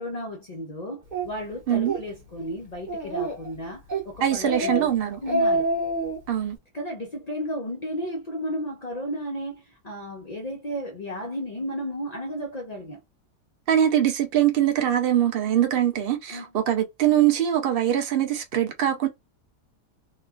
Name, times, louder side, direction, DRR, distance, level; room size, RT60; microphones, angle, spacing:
voice 1, 0.0-4.9 5.2-5.7 6.7-13.0 16.3-16.5, equal, 90° left, 0.3 m, -33 dB
Speech, 1.1-1.3 1.7-2.0 2.4-2.5 2.9-3.5 3.9-4.1 4.4-4.8 5.1-6.2, right 2 dB, 35° right, 0.8 m, -26 dB
voice 2, 4.2-5.2 6.3-6.6 13.7-19.1, right 11 dB, 75° right, 0.5 m, -22 dB
3.0 x 2.3 x 2.3 m
omnidirectional pair, 1.7 m